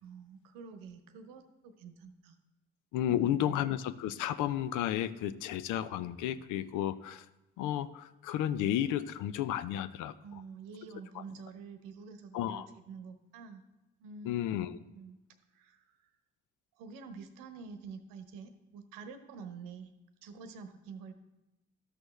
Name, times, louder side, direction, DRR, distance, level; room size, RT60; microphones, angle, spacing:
voice 1, 0.0-2.4 3.1-3.6 10.2-13.6 14.0-14.5 14.8-15.2 15.5-16.1 16.8-19.9 20.2-21.1, right 5 dB, 70° right, 9 dB, 1.0 m, -48 dB
voice 2, 2.9-7.3 7.6-10.1 12.3-12.7 14.3-14.8, left 11 dB, 65° left, 13 dB, 0.6 m, -32 dB
12.5 x 6.1 x 3.3 m, 0.98 s
hypercardioid pair, 45°, 33 cm